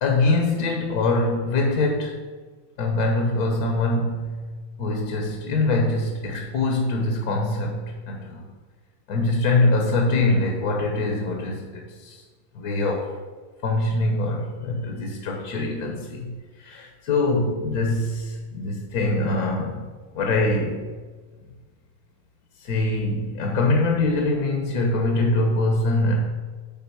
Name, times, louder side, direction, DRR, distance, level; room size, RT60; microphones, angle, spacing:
voice 1, 0.0-2.2 2.8-4.5 4.8-8.5 9.1-12.2 12.5-13.1 13.6-16.3 16.6-19.8 20.1-20.8 22.6-26.2, left 2 dB, 60° left, 2 dB, 1.3 m, -23 dB
8.7 x 3.8 x 6.0 m, 1.4 s
omnidirectional pair, 2.1 m